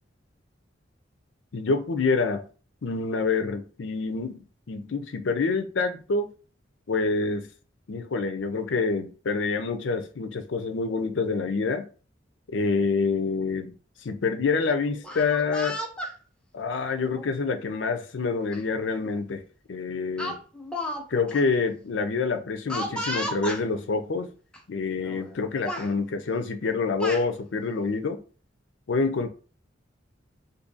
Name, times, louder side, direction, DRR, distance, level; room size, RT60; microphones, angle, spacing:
voice 1, 1.5-2.4 2.8-6.3 6.9-7.5 7.9-11.8 12.5-13.7 14.0-15.8 16.5-19.4 19.7-20.4 21.1-24.3 24.7-28.2 28.9-29.3, left 4 dB, 90° left, 0.5 m, -27 dB
Speech, 14.9-16.1 17.0-17.3 18.5-18.6 19.0-19.2 20.2-21.0 21.3-21.4 22.7-23.6 24.5-24.6 25.0-25.4 25.7-25.9 26.7-27.3, equal, 5° left, 0.5 m, -33 dB
2.7 x 2.6 x 3.8 m
head